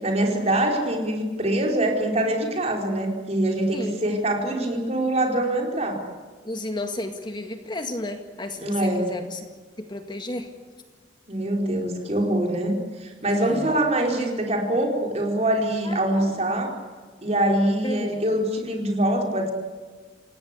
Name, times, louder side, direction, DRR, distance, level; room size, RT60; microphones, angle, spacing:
voice 1, 0.0-6.0 8.6-9.1 11.3-16.7 17.2-19.5, right 1 dB, 35° right, 2 dB, 4.9 m, -24 dB
voice 2, 3.7-4.0 6.4-9.5 9.8-10.5 13.3-13.8 15.8-16.3 17.8-18.2, left 1 dB, 25° left, 6 dB, 2.0 m, -33 dB
28.0 x 17.5 x 8.3 m, 1.4 s
head